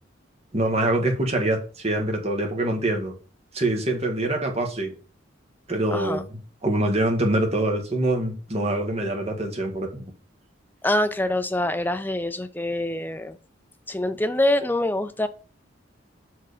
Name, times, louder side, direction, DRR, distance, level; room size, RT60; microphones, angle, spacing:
voice 1, 0.5-3.1 3.5-4.9 5.7-10.0, right 1 dB, 30° right, 1.5 m, -25 dB
voice 2, 5.9-6.2 10.8-13.4 13.9-15.3, left 1 dB, 10° left, 0.5 m, -25 dB
6.1 x 4.7 x 4.9 m
head